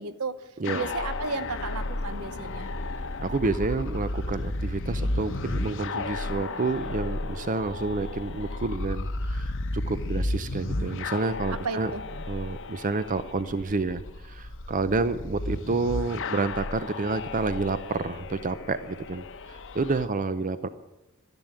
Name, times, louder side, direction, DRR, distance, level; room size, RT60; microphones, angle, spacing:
voice 1, 0.0-0.4 0.7-2.7 11.5-12.0, right 4 dB, 75° right, 12 dB, 1.0 m, -33 dB
sound 1, 0.6-20.1, left 2 dB, 60° left, 1.0 m, -33 dB
voice 2, 3.2-11.9 12.3-20.7, right 3 dB, 35° right, 12 dB, 0.6 m, -29 dB
13.0 x 10.5 x 9.0 m, 0.95 s
head